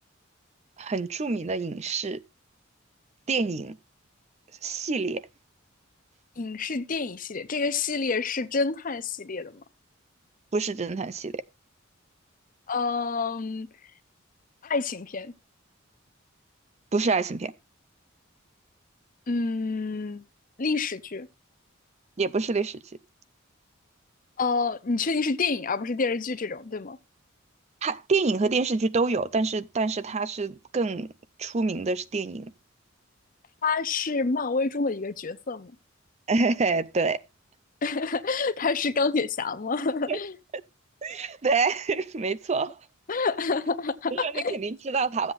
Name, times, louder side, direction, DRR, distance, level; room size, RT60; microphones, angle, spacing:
voice 1, 0.8-2.2 3.3-3.8 4.6-5.3 10.5-11.4 16.9-17.5 22.2-22.8 27.8-31.1 31.4-32.5 36.3-37.2 40.1-40.2 41.0-42.8 44.1-45.3, right 4 dB, 35° right, 0.5 m, -27 dB
voice 2, 6.4-9.6 12.7-13.7 14.6-15.3 19.3-20.2 20.6-21.3 24.4-27.0 33.6-35.7 37.8-40.4 43.1-44.6, left 4 dB, 40° left, 0.7 m, -28 dB
14.5 x 7.9 x 2.5 m
head